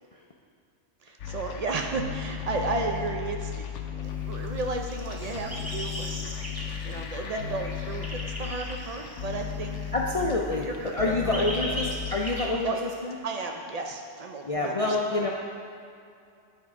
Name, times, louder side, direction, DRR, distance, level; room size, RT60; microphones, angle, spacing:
voice 1, 1.0-3.7 3.9-6.3 6.8-9.9 10.2-10.4 10.6-11.8 12.4-12.8 13.2-15.3, right 3 dB, 65° right, 2 dB, 0.4 m, -34 dB
sound 1, 1.2-12.6, left 9 dB, 75° left, 0.9 m, -36 dB
sound 2, 4.1-10.3 10.5-12.5, equal, 15° right, 0.6 m, -39 dB
voice 2, 9.9-12.7 13.0-13.1 14.4-15.3, left 2 dB, 55° left, -2 dB, 0.4 m, -27 dB
9.6 x 3.7 x 4.8 m, 2.4 s
omnidirectional pair, 1.3 m